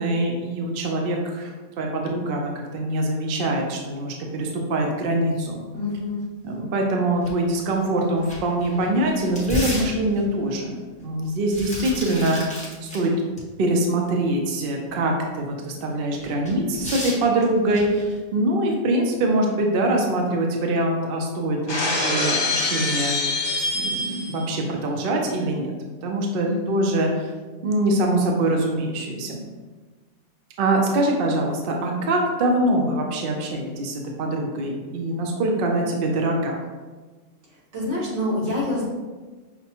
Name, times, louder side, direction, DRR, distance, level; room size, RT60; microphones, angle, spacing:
voice 1, 0.0-5.6 6.4-13.1 13.6-23.2 23.7-25.7 26.0-27.1 27.6-29.5 30.6-36.6, right 1 dB, 60° right, 1 dB, 0.7 m, -24 dB
voice 2, 5.7-6.3 26.4-26.9 37.7-38.9, left 2 dB, 85° right, -6 dB, 1.5 m, -27 dB
sound 1, 7.2-7.3 7.7-7.8 8.2-10.4 11.2-13.1 13.4-13.5 16.2-18.1, left 1 dB, 5° left, 0.7 m, -33 dB
Shatter, 21.7-24.4, left 3 dB, 50° left, 0.9 m, -24 dB
5.7 x 2.2 x 2.8 m, 1.3 s
omnidirectional pair, 1.2 m